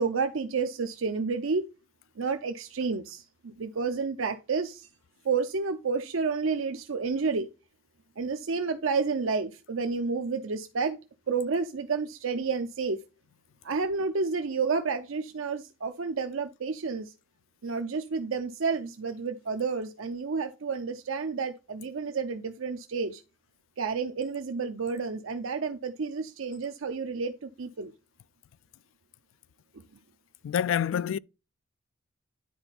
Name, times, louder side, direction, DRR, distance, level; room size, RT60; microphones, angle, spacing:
voice 1, 0.0-1.7 2.2-4.9 5.2-7.5 8.2-11.0 11.3-13.0 13.6-17.1 17.6-23.2 23.8-27.9, right 4 dB, 85° right, 0.6 m, -30 dB
voice 2, 30.4-31.2, left 9 dB, 70° left, 0.3 m, -27 dB
10.0 x 4.4 x 4.1 m
head